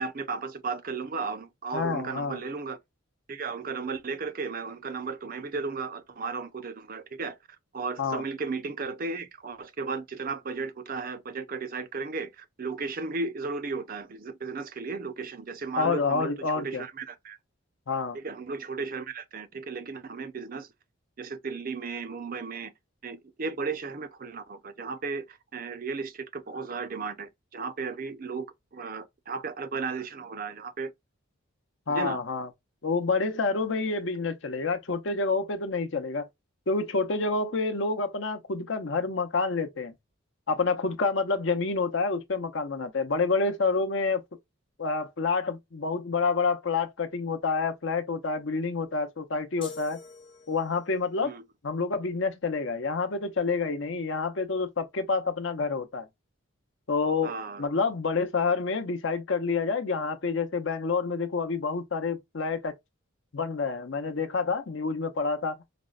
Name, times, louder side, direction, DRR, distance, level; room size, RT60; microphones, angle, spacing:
voice 1, 0.0-2.8 3.3-7.4 7.7-17.4 18.1-20.7 21.2-22.7 23.0-30.9 31.9-32.2 51.2-51.4 57.2-57.6, right 4 dB, 45° right, 0.5 m, -35 dB
voice 2, 1.7-2.4 8.0-8.2 15.7-16.8 17.9-18.2 31.9-32.5 32.8-36.3 36.7-39.9 40.5-44.2 44.8-50.0 50.5-51.3 51.6-56.1 56.9-57.3 57.6-62.7 63.3-65.6, left 4 dB, 60° left, 0.7 m, -28 dB
sound 1, 49.6-51.0, left 4 dB, 25° left, 0.8 m, -45 dB
5.0 x 2.1 x 2.3 m
head